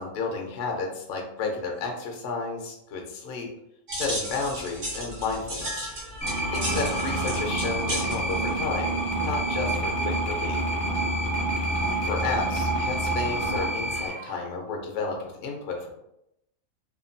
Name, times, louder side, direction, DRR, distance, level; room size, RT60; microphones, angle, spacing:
voice 1, 0.0-3.5 3.9-5.9 6.5-10.6 12.0-15.9, left 4 dB, 65° left, 2 dB, 0.9 m, -32 dB
sound 1, 1.7-2.0 5.5-7.5 10.3-10.7 11.9-12.1 13.8-14.5, right 2 dB, 85° right, 1.2 m, -43 dB
sound 2, 3.9-9.6, equal, 60° right, 1.1 m, -35 dB
sound 3, 6.2-14.1, right 1 dB, 35° left, 0.6 m, -27 dB
2.8 x 2.3 x 2.5 m, 0.83 s
omnidirectional pair, 1.5 m